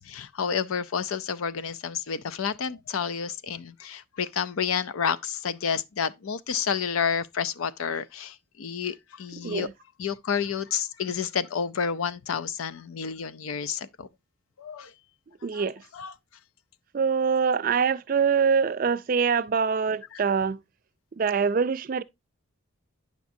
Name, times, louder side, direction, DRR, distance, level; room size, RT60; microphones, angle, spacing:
voice 1, 0.0-9.7 10.0-14.1 14.6-14.9 15.5-15.6 15.9-16.1, left 7 dB, 85° left, 0.5 m, -30 dB
voice 2, 9.4-9.7 15.4-15.8 16.9-20.6 21.2-22.0, right 6 dB, 40° right, 0.3 m, -24 dB
9.2 x 5.9 x 2.6 m
head